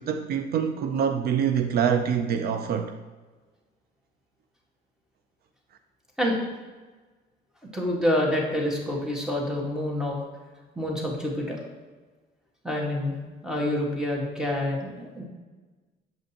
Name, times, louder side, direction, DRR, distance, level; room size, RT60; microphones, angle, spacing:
voice 1, 0.0-3.0, right 7 dB, 60° right, 0.4 m, -25 dB
voice 2, 7.7-10.2 10.7-11.6 12.6-13.2 13.4-15.2, left 1 dB, 5° right, 1.5 m, -27 dB
7.5 x 5.1 x 2.8 m
cardioid pair, 95°, 18 cm